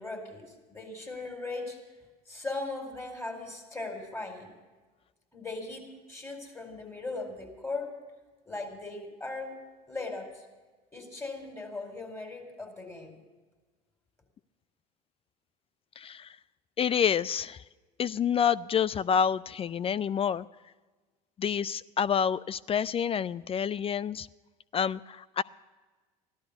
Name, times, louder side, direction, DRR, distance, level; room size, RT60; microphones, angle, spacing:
voice 1, 0.0-1.8 2.3-4.5 5.3-7.9 8.5-9.6 9.9-10.5 10.9-13.1, left 3 dB, 15° left, 3 dB, 4.3 m, -38 dB
voice 2, 16.0-16.4 16.8-17.6 18.0-20.5 21.4-24.3 24.7-25.4, left 8 dB, 30° left, 18 dB, 0.4 m, -28 dB
15.5 x 12.0 x 6.8 m, 1.3 s
hypercardioid pair, 75°, 20 cm